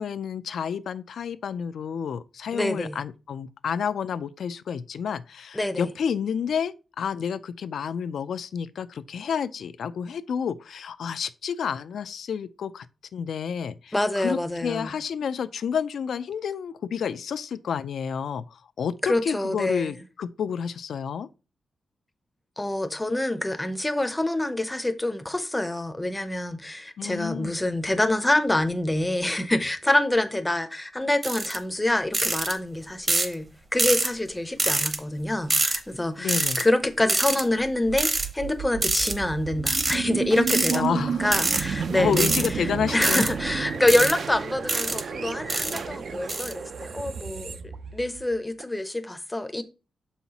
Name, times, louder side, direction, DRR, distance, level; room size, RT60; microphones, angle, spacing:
voice 1, 0.0-12.9 13.1-21.3 27.0-27.6 36.2-36.6 40.7-41.2 42.0-43.3, left 7 dB, 70° left, 0.4 m, -30 dB
voice 2, 2.5-3.0 5.5-5.9 13.9-14.9 19.0-19.9 22.6-42.3 42.9-47.6 47.9-49.6, left 1 dB, 10° left, 0.6 m, -26 dB
sound 1, 31.2-31.6 32.1-32.5 33.1-33.3 33.8-34.1 34.6-35.0 35.5-35.8 36.3-36.6 37.1-37.4 38.0-38.3 38.8-39.1 39.7-40.0 40.5-40.8 41.3-41.6 42.1-42.5 43.0-43.3 43.9-44.1 44.7-45.0 45.5-45.8 46.3-46.5, right 2 dB, 30° right, 0.8 m, -24 dB
sound 2, 37.6-48.6, right 6 dB, 55° right, 0.5 m, -32 dB
7.1 x 5.6 x 2.9 m
wide cardioid pair, 155°, 0 cm